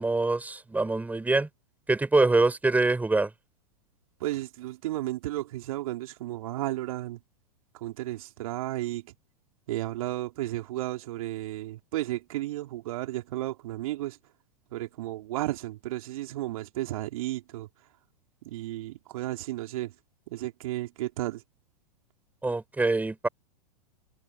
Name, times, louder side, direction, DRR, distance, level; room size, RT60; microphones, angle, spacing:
voice 1, 0.0-1.5 1.9-3.3 22.4-23.3, right 3 dB, 10° right, 4.8 m, -24 dB
voice 2, 4.2-7.2 7.7-9.1 9.7-14.2 14.7-17.7 18.4-19.9 20.3-21.4, right 15 dB, 60° right, 3.4 m, -33 dB
figure-of-eight pair, 100°, 21 cm